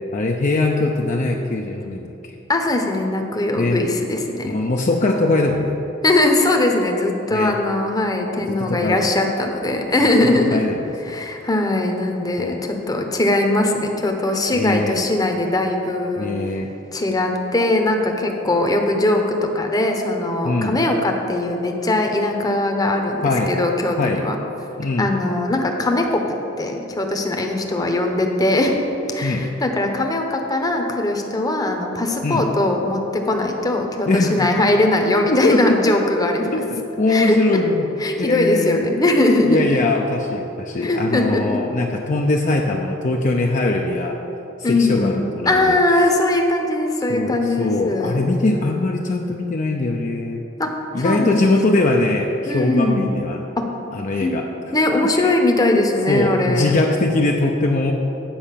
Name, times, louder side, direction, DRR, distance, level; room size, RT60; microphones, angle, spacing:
voice 1, 0.1-2.3 3.6-3.9 4.4-5.8 7.3-7.6 8.5-9.0 10.0-10.1 10.5-10.8 11.1-11.2 12.4-12.6 14.5-15.0 16.2-16.7 20.4-20.8 23.2-23.6 24.0-24.3 24.8-25.1 29.2-29.5 32.2-32.5 34.1-34.5 35.3-35.9 36.5-37.9 38.2-38.9 39.4-44.2 44.6-45.8 47.1-50.4 50.9-53.4 53.9-54.5 55.0-55.3 56.1-57.9, left 2 dB, 40° left, 1 dB, 0.5 m, -21 dB
voice 2, 2.5-4.5 6.0-10.6 11.0-16.3 16.9-19.2 19.5-24.4 25.0-26.2 26.6-28.8 29.1-36.5 37.1-37.6 38.0-39.6 40.8-41.6 44.6-45.1 45.5-48.3 50.6-50.7 51.0-51.6 52.5-53.0 54.2-54.3 54.7-56.7, left 2 dB, 20° left, 3 dB, 0.8 m, -20 dB
8.6 x 5.1 x 7.4 m, 2.9 s
head